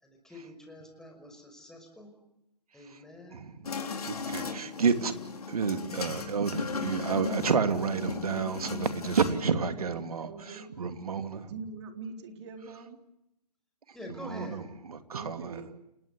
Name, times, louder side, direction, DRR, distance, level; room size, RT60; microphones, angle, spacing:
voice 1, 0.0-2.1 2.7-3.4 4.4-4.8 9.0-9.2 13.9-14.6, left 1 dB, 5° left, 3 dB, 5.4 m, -46 dB
sound 1, 3.6-9.4, left 5 dB, 65° left, 4.3 m, -37 dB
voice 2, 4.1-5.1 5.5-11.5 14.3-14.6 15.1-15.6, right 5 dB, 65° right, 9 dB, 2.7 m, -30 dB
voice 3, 9.7-10.7 11.4-13.0 15.1-15.7, right 5 dB, 45° right, 6 dB, 3.9 m, -43 dB
29.5 x 18.0 x 8.5 m, 0.84 s
figure-of-eight pair, 135°, 21 cm